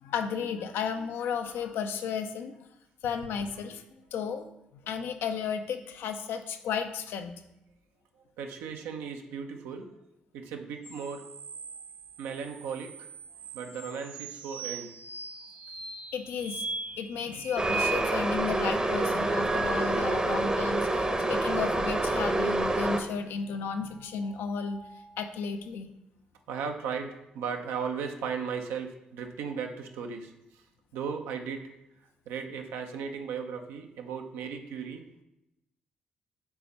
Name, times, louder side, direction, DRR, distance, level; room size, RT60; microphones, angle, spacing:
voice 1, 0.0-2.6 3.0-3.8 4.1-4.5 4.8-7.4 16.1-16.6 16.9-24.8 25.2-25.9, left 6 dB, 65° left, 7 dB, 0.5 m, -33 dB
voice 2, 8.4-9.9 10.3-11.3 12.2-13.1 13.5-15.0 26.5-30.6 30.9-31.7 32.3-35.2, right 6 dB, 75° right, 5 dB, 0.6 m, -36 dB
sound 1, 10.8-20.4 20.9-22.2 24.0-25.2, right 4 dB, 50° right, 1.0 m, -40 dB
sound 2, 17.6-23.0, right 2 dB, 20° right, 0.8 m, -27 dB
4.6 x 4.2 x 5.3 m, 0.88 s
hypercardioid pair, 45°, 4 cm